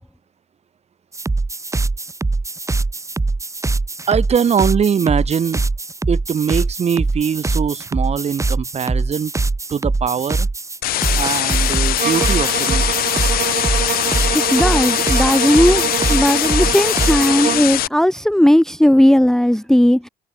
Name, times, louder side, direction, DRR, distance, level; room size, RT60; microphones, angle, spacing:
sound 1, 1.1-17.3, right 3 dB, 20° right, 4.3 m, -22 dB
voice 1, 4.1-5.6 6.1-9.3 9.7-10.5 11.2-12.9, right 7 dB, 45° right, 2.5 m, -21 dB
sound 2, 10.8-17.9, left 15 dB, 75° left, 1.7 m, -21 dB
sound 3, 12.0-17.8, right 11 dB, 60° right, 1.7 m, -26 dB
voice 2, 14.3-20.1, left 1 dB, 5° left, 0.9 m, -16 dB
cardioid pair, 90°, 15 cm